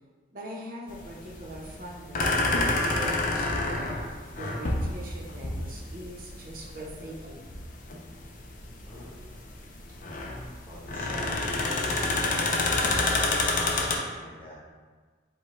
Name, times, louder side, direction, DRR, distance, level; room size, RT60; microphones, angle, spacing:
voice 1, 0.3-7.6, right 1 dB, 50° right, -3 dB, 0.8 m, -42 dB
sound 1, 0.9-14.0, left 2 dB, 45° left, 0.5 m, -28 dB
voice 2, 8.8-9.1 10.7-11.4 11.7-12.3 13.2-14.5, equal, 10° left, -10 dB, 1.1 m, -46 dB
4.9 x 2.3 x 4.2 m, 1.5 s
head